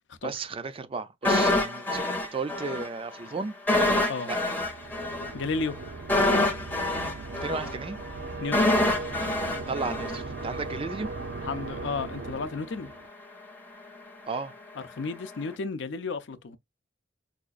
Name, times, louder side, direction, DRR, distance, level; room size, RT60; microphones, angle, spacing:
voice 1, 0.2-3.5 4.3-4.4 7.1-8.0 9.7-11.1 14.3-14.5, right 4 dB, 30° right, 0.4 m, -34 dB
sound 1, 1.2-2.9 3.1-3.3 3.7-10.7 11.0-11.2, left 2 dB, 10° left, 0.7 m, -26 dB
sound 2, 4.6-13.1, right 3 dB, 85° right, 0.6 m, -39 dB
voice 2, 5.3-5.8 8.4-8.6 11.4-12.9 14.8-16.6, left 4 dB, 65° left, 0.5 m, -33 dB
4.9 x 2.4 x 2.4 m
head